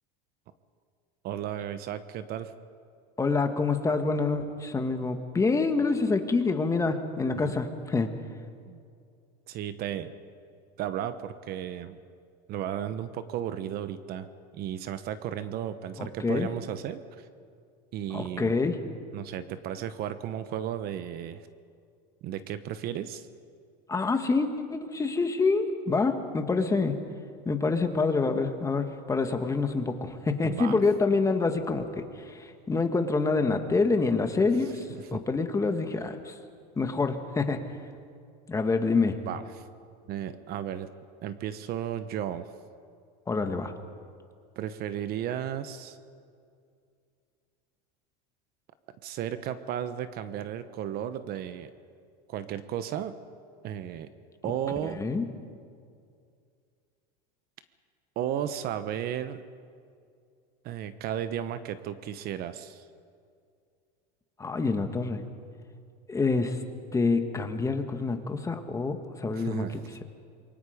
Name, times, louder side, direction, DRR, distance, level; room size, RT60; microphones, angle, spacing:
voice 1, 1.2-2.5 8.7-8.8 9.5-10.1 10.8-12.0 12.5-14.3 14.5-17.3 17.9-18.5 19.1-21.4 22.2-23.3 30.4-30.8 34.9-35.2 39.3-39.4 40.1-40.9 41.2-42.5 44.6-46.0 49.0-51.7 52.3-53.1 53.6-54.1 54.4-55.0 58.2-59.4 60.6-62.8 69.3-69.8, right 10 dB, 45° right, 11 dB, 1.1 m, -34 dB
voice 2, 3.2-8.1 16.0-16.5 18.1-18.8 23.9-27.0 27.4-36.4 36.8-37.6 38.5-39.2 43.3-43.7 54.8-55.3 64.4-65.2 66.1-66.6 66.9-69.8, left 4 dB, 15° left, 6 dB, 1.6 m, -27 dB
27.0 x 23.0 x 5.2 m, 2.3 s
supercardioid pair, 125°, 21 cm